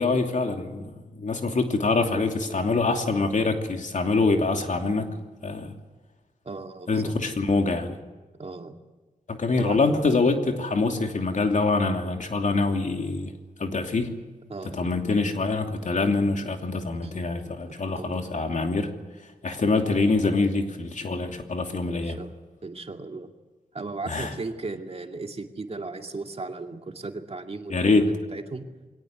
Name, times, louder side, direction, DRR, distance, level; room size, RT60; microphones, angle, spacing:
voice 1, 0.0-5.1 5.4-5.7 6.9-8.0 9.3-13.3 13.6-14.1 14.7-18.9 19.4-22.2 24.1-24.3 27.7-28.1, left 3 dB, 55° left, 4 dB, 2.9 m, -25 dB
voice 2, 6.4-7.1 8.4-8.8 9.6-9.8 14.5-14.9 17.0-17.1 18.0-18.2 21.9-22.3 22.6-23.3 23.7-28.7, right 3 dB, 45° right, 4 dB, 2.3 m, -36 dB
23.0 x 18.0 x 9.6 m, 1.3 s
cardioid pair, 65°, 15 cm